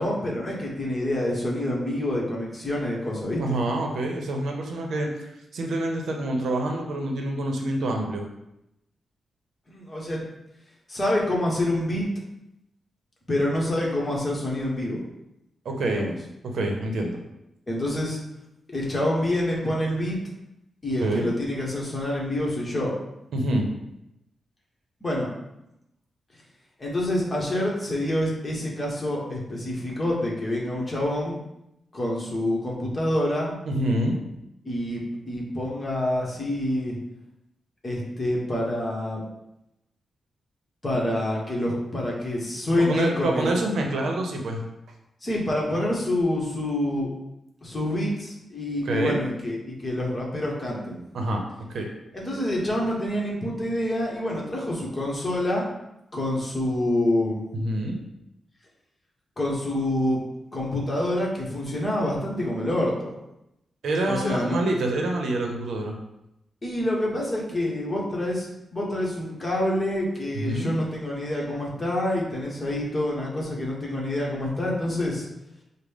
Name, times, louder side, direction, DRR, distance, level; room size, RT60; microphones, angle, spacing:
voice 1, 0.0-3.6 9.7-10.2 10.9-12.1 13.3-15.0 15.8-16.2 17.7-18.2 18.7-20.2 20.8-23.0 25.0-25.3 26.8-31.4 31.9-33.5 34.6-37.0 37.8-39.2 40.8-43.5 45.2-47.1 47.6-51.0 52.1-55.7 56.1-57.5 59.4-60.2 60.5-63.1 64.1-64.6 66.6-75.3, left 1 dB, 25° left, -3 dB, 1.1 m, -27 dB
voice 2, 3.4-8.3 15.6-16.1 16.4-17.2 21.0-21.3 23.3-23.7 33.6-34.2 42.8-44.6 48.9-49.2 51.1-51.4 51.7-51.9 57.5-58.0 63.8-66.0 70.3-70.7, right 1 dB, 80° right, 2 dB, 0.7 m, -26 dB
6.2 x 2.1 x 3.5 m, 0.86 s
wide cardioid pair, 130°, 0 cm